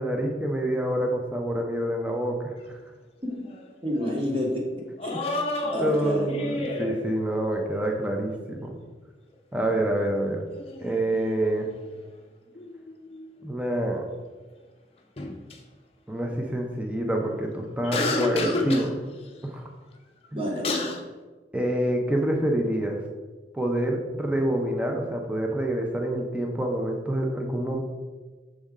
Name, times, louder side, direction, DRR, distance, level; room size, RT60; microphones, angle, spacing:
voice 1, 0.0-2.5 5.8-8.7 9.5-10.4 10.8-11.7 13.4-14.0 16.1-19.0 19.4-19.6 20.3-20.4 21.5-23.0 23.5-27.8, right 1 dB, 5° right, 1 dB, 0.6 m, -27 dB
sound 1, 3.3-3.7 3.9-4.1 5.0-7.0 10.5-12.1 12.5-13.4 15.2-15.5 17.8-18.9 20.2-20.3 20.6-21.0, left 2 dB, 35° left, 0.6 m, -30 dB
voice 2, 3.8-6.3 20.3-20.9, equal, 30° right, -1 dB, 1.2 m, -30 dB
6.3 x 4.3 x 3.6 m, 1.3 s
head